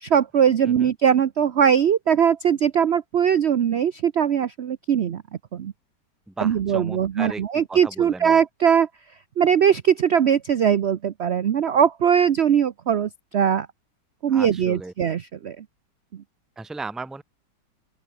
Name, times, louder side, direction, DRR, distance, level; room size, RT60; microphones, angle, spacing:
voice 1, 0.0-5.2 5.5-5.7 6.4-8.9 9.4-13.7 14.2-15.6, right 8 dB, 55° right, 0.7 m, -20 dB
voice 2, 6.3-7.4 7.7-8.4 14.3-14.9 16.6-17.2, right 3 dB, ahead, 0.8 m, -35 dB
open air
omnidirectional pair, 2.0 m